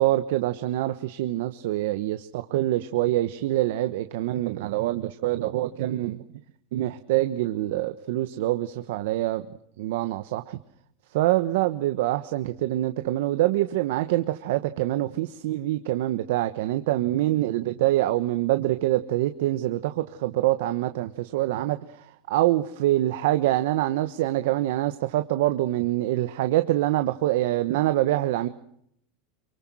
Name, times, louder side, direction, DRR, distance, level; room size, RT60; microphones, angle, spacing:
voice 1, 0.0-6.2 6.7-9.4 9.8-10.6 11.1-28.5, right 15 dB, 70° right, 9 dB, 1.2 m, -25 dB
25.0 x 23.5 x 6.3 m, 0.71 s
supercardioid pair, 135°, 0 cm